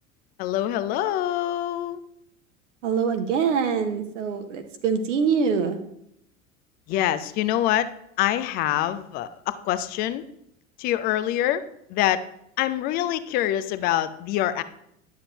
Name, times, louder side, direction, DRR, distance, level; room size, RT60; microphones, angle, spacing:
voice 1, 0.4-2.0 6.9-7.9 8.2-10.2 10.8-11.6 11.9-12.2 12.6-14.6, left 12 dB, 25° left, 14 dB, 0.4 m, -25 dB
voice 2, 2.8-5.8, right 6 dB, 60° right, 7 dB, 0.9 m, -24 dB
11.0 x 7.1 x 2.9 m, 0.76 s
figure-of-eight pair, 80°, 42 cm